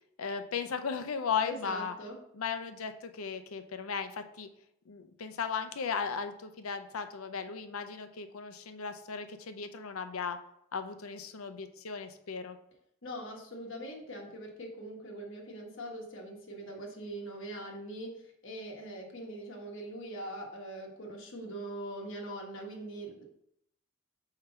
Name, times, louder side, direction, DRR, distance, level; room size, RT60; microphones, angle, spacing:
voice 1, 0.2-1.9 2.3-4.5 4.9-10.4 10.7-12.6, left 6 dB, 80° left, 8 dB, 0.6 m, -36 dB
voice 2, 1.4-2.2 13.0-23.2, right 1 dB, 65° left, 0 dB, 1.4 m, -42 dB
4.5 x 3.8 x 5.5 m, 0.75 s
head